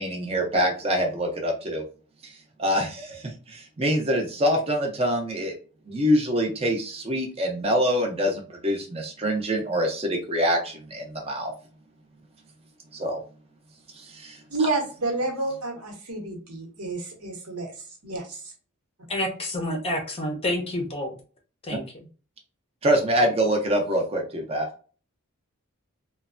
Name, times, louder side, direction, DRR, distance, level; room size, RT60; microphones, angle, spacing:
voice 1, 0.0-1.8 2.2-2.3 2.6-5.5 5.9-11.5 12.9-13.2 13.9-14.4 22.8-24.7, equal, 25° right, 1 dB, 0.6 m, -25 dB
voice 2, 14.5-17.7 18.0-18.4, right 3 dB, 80° right, 0 dB, 1.0 m, -29 dB
voice 3, 19.1-21.1 21.6-21.8, left 1 dB, 25° left, 2 dB, 0.6 m, -28 dB
3.1 x 2.2 x 2.4 m, 0.38 s
head